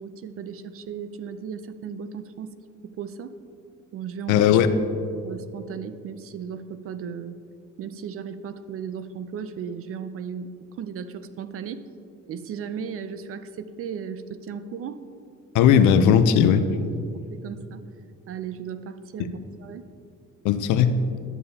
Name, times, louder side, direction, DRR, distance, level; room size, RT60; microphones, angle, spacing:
voice 1, 0.0-2.5 2.8-3.4 3.9-4.5 5.2-7.4 7.8-11.8 12.3-15.0 17.3-17.8 18.3-19.8, right 7 dB, 50° right, 12 dB, 0.4 m, -36 dB
voice 2, 4.3-4.7 15.5-16.9 19.2-19.3 20.4-20.9, left 8 dB, 80° left, 11 dB, 0.5 m, -18 dB
11.0 x 6.7 x 2.8 m, 2.5 s
cardioid pair, 105°, 30 cm